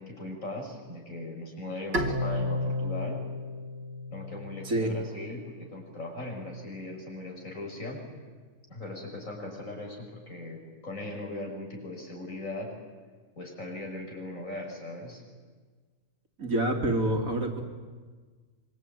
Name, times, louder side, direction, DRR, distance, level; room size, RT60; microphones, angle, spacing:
voice 1, 0.0-3.2 4.1-8.0 8.7-12.7 13.4-15.2, left 2 dB, 55° left, 1 dB, 6.1 m, -39 dB
Bowed string instrument, 1.9-5.2, left 1 dB, 40° right, 2.5 m, -32 dB
voice 2, 16.4-17.6, right 1 dB, 65° right, 4 dB, 3.2 m, -27 dB
25.5 x 23.0 x 9.1 m, 1.5 s
omnidirectional pair, 1.6 m